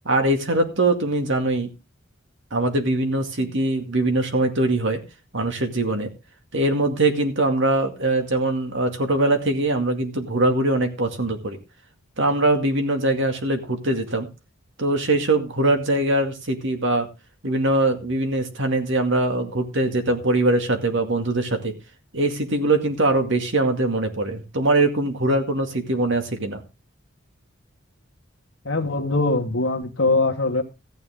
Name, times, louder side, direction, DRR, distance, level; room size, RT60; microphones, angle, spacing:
voice 1, 0.0-1.7 2.5-5.0 5.3-6.1 6.5-11.6 12.2-14.3 14.8-17.1 17.4-21.7 22.1-26.6, right 2 dB, 65° right, 6 dB, 2.2 m, -22 dB
voice 2, 28.6-30.6, left 2 dB, 65° left, 2 dB, 1.4 m, -22 dB
14.5 x 9.4 x 3.7 m, 0.28 s
head